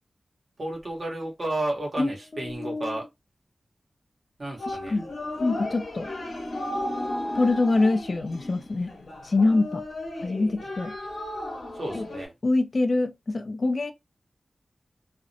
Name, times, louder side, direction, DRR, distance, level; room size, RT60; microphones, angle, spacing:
voice 1, 0.6-3.0 4.4-5.0 11.8-12.3, right 1 dB, 45° right, 1.0 m, -32 dB
voice 2, 2.0-3.0 4.7-5.1 5.4-6.1 7.3-8.9 9.2-9.8 10.2-10.9 11.9-12.1 12.4-13.9, left 2 dB, 45° left, 0.4 m, -25 dB
sound 1, 4.6-12.3, left 1 dB, 90° left, 0.8 m, -34 dB
2.5 x 2.0 x 2.6 m
wide cardioid pair, 115°, 0 cm